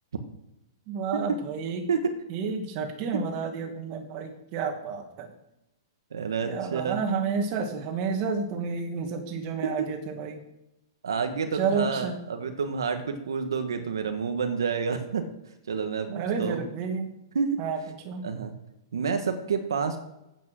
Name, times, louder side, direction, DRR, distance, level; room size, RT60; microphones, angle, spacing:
voice 1, 0.9-1.8 2.3-5.3 6.4-10.4 11.5-12.1 16.1-17.1 17.6-17.8 18.0-18.3, right 5 dB, 40° right, 5 dB, 2.2 m, -30 dB
voice 2, 6.1-7.0 9.6-9.7 11.0-15.2 15.7-16.6 17.3-17.6 18.2-18.5 18.9-20.0, right 5 dB, 90° right, 6 dB, 1.4 m, -29 dB
8.9 x 8.7 x 6.3 m, 0.89 s
hypercardioid pair, 140°, 2 cm